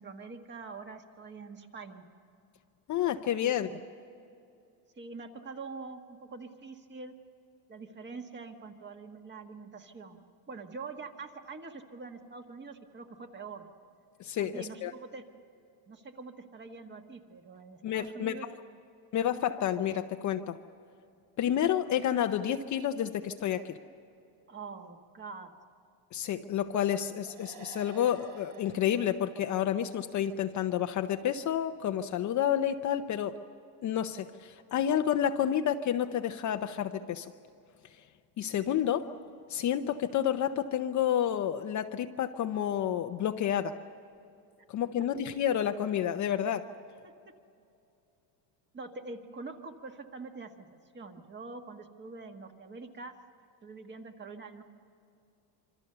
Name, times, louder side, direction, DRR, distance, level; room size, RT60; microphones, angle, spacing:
voice 1, 0.0-2.0 3.3-3.8 5.0-7.1 7.7-13.7 14.4-15.2 15.9-18.8 24.5-25.5 48.7-50.7 50.9-53.1 53.6-54.6, right 4 dB, 20° right, 5 dB, 1.5 m, -45 dB
voice 2, 2.9-3.7 14.2-14.9 17.8-18.5 19.1-20.6 21.4-23.8 26.1-33.4 33.8-37.3 38.4-39.1 39.5-43.8 44.7-46.7, left 10 dB, 35° left, 7 dB, 0.7 m, -30 dB
sound 1, 27.3-30.7, right 8 dB, 65° right, 2.5 m, -53 dB
26.0 x 25.5 x 6.8 m, 2.6 s
cardioid pair, 145°, 48 cm